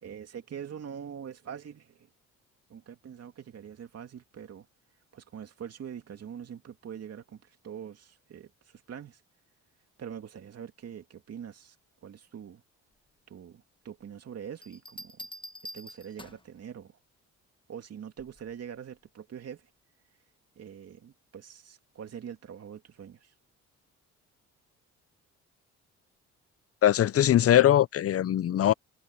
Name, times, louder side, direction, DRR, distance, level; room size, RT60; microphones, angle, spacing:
voice 1, 0.0-2.1 2.7-4.7 5.1-9.2 10.0-11.8 12.0-12.6 13.3-15.3 15.7-17.0 17.7-19.7 20.6-23.3, right 8 dB, 55° right, 2.6 m, -44 dB
sound 1, 14.6-16.6 18.2-18.5, left 1 dB, 15° left, 1.3 m, -45 dB
voice 2, 26.8-28.7, left 12 dB, 50° left, 0.7 m, -21 dB
cardioid pair, 90°, 30 cm